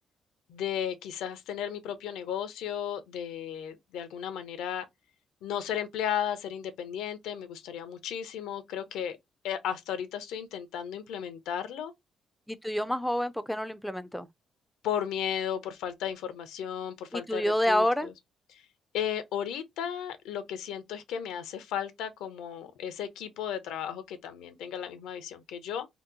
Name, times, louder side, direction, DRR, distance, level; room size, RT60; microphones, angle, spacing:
voice 1, 0.5-4.8 5.4-9.2 9.4-11.9 14.8-18.1 18.5-18.6 18.9-25.9, left 9 dB, 90° left, 0.6 m, -34 dB
voice 2, 12.5-14.3 17.1-18.1, equal, 5° left, 0.4 m, -28 dB
2.9 x 2.1 x 3.6 m
cardioid pair, 90°, 0 cm